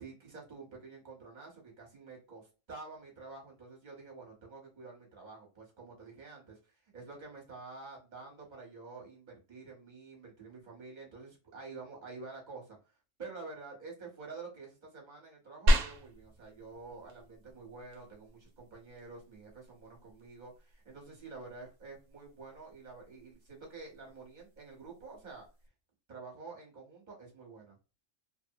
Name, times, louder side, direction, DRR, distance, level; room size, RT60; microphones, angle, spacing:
voice 1, 0.0-12.8 13.2-25.5 26.1-27.8, right 3 dB, 40° right, -1 dB, 1.2 m, -49 dB
sound 1, 15.7-25.7, equal, 85° right, 1.0 m, -37 dB
3.0 x 2.0 x 2.7 m, 0.31 s
omnidirectional pair, 1.3 m